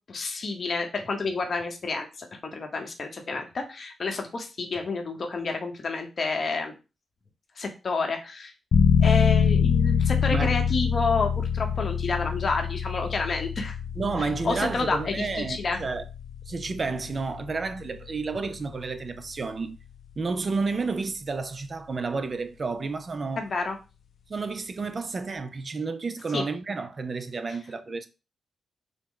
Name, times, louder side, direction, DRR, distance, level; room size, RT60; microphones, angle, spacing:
voice 1, 0.1-2.3 2.5-6.7 7.6-8.5 9.0-13.8 14.2-15.8 23.4-23.8 26.3-26.4, left 3 dB, 50° left, 0.7 m, -29 dB
sound 1, 8.7-19.3, left 7 dB, 70° left, 0.3 m, -26 dB
voice 2, 14.0-16.0 16.5-19.8 20.2-23.5 24.3-28.1, right 4 dB, 45° right, 0.3 m, -31 dB
3.4 x 2.0 x 3.6 m
cardioid pair, 95°, 0 cm